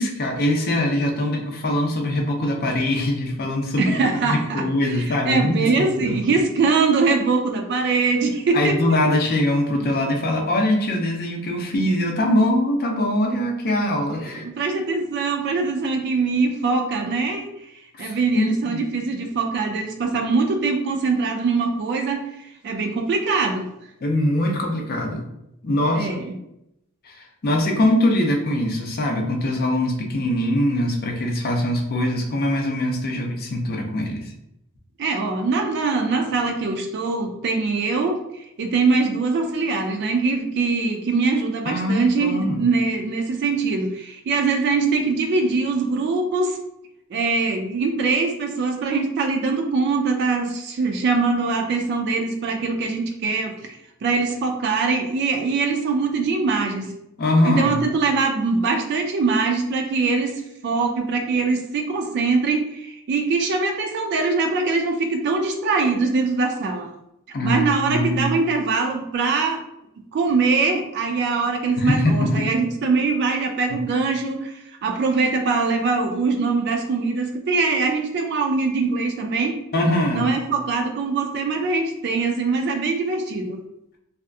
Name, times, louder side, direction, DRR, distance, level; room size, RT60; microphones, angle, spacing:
voice 1, 0.0-3.9 4.2-6.2 8.5-14.4 18.0-18.8 24.0-25.3 25.6-26.1 27.0-34.3 41.7-42.6 57.2-57.8 67.3-68.3 71.8-72.5 79.7-80.3, left 1 dB, 45° left, 2 dB, 0.5 m, -22 dB
voice 2, 3.8-9.0 9.9-10.0 14.2-17.5 18.0-23.7 25.9-26.4 35.0-38.2 38.6-46.6 47.1-56.9 57.5-66.9 67.4-69.6 70.1-79.6 80.1-83.6, right 4 dB, 50° right, 3 dB, 0.3 m, -22 dB
2.7 x 2.4 x 2.3 m, 0.84 s
head